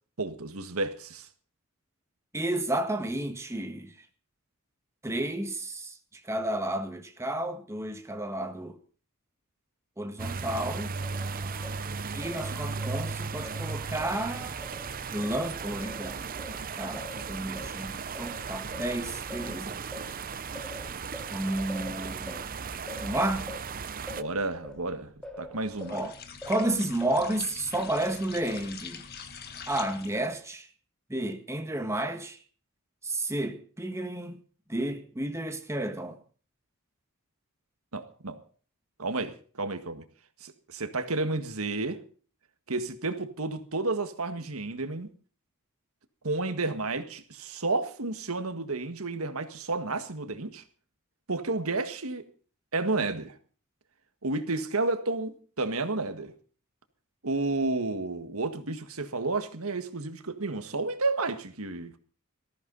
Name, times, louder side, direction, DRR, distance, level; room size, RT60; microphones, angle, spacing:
voice 1, 0.2-1.3 24.1-25.1 25.4-26.0 37.9-38.4 39.0-40.0 40.4-42.0 42.7-45.1 46.2-50.6 51.3-52.2 52.7-53.4 54.2-56.3 57.2-62.0, right 3 dB, 75° right, 1.7 m, -31 dB
voice 2, 2.3-4.1 5.0-8.8 10.0-10.9 12.1-14.6 15.1-19.8 21.3-22.5 23.0-23.6 25.9-26.1 26.5-29.1 29.7-30.7 31.1-32.4 33.0-34.4 34.7-36.2, right 1 dB, 15° right, 1.6 m, -32 dB
sound 1, 10.2-24.2, right 5 dB, 40° right, 0.7 m, -36 dB
Singing, 11.0-15.4 15.8-26.1 26.4-27.4, left 1 dB, 5° left, 2.9 m, -46 dB
sound 2, 25.7-30.4, left 6 dB, 45° left, 1.7 m, -44 dB
19.5 x 14.5 x 4.0 m
head